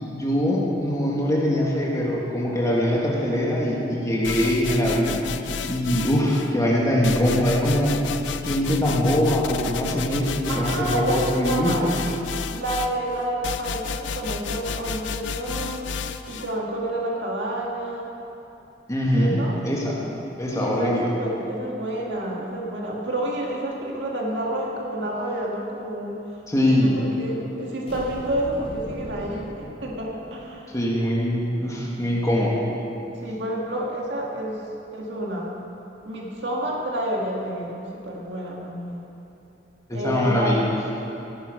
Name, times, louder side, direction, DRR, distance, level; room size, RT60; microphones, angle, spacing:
voice 1, 0.1-8.0 8.4-11.8 18.9-19.4 19.6-20.0 20.4-21.1 26.5-27.0 30.7-32.6 39.9-40.6, equal, 20° left, -3 dB, 1.7 m, -22 dB
sound 1, 4.2-6.5 7.0-16.5, left 6 dB, 85° left, 0.5 m, -32 dB
voice 2, 10.5-11.9 12.5-15.9 16.3-18.1 19.2-19.6 20.5-26.2 26.6-30.7 33.2-34.6 34.9-35.5 36.0-39.0 39.9-40.6, right 1 dB, 75° right, -2 dB, 1.8 m, -29 dB
sound 2, 27.9-30.6, equal, 35° left, 2.6 m, -38 dB
16.0 x 10.0 x 5.1 m, 2.9 s
head